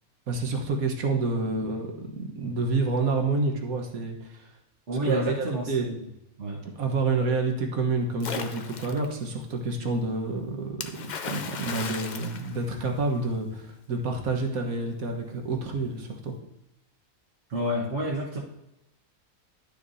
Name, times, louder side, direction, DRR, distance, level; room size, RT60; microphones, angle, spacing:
voice 1, 0.3-4.5 5.0-5.9 6.8-16.3, right 3 dB, 75° right, 2 dB, 1.7 m, -28 dB
voice 2, 4.9-5.9 6.4-6.6 17.5-18.4, right 1 dB, 50° right, -5 dB, 1.6 m, -29 dB
Splash splatter, 8.2-9.1 10.8-13.2, left 5 dB, 50° left, 0.5 m, -36 dB
12.0 x 6.6 x 2.7 m, 0.89 s
omnidirectional pair, 1.5 m